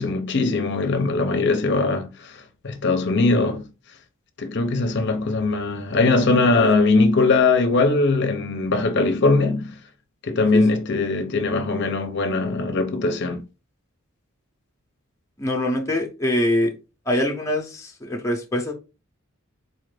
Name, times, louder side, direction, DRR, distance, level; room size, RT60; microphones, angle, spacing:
voice 1, 0.0-3.6 4.4-9.7 10.2-13.4, left 3 dB, 55° left, 0.6 m, -21 dB
voice 2, 15.4-16.7 17.1-18.7, left 1 dB, 15° left, 0.6 m, -23 dB
4.1 x 2.5 x 3.2 m
head